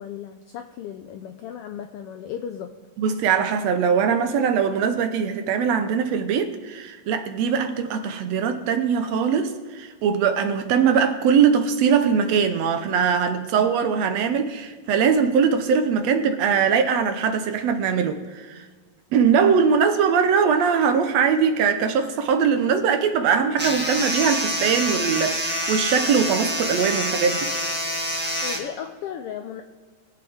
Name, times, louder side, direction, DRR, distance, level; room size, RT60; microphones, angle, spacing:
voice 1, 0.0-2.8 28.4-29.6, left 8 dB, 85° left, 1.3 m, -35 dB
voice 2, 3.0-18.6 19.1-27.5, right 6 dB, 70° right, 1.9 m, -21 dB
sound 1, 23.6-28.6, equal, 5° right, 1.2 m, -26 dB
23.0 x 8.0 x 3.6 m
omnidirectional pair, 3.3 m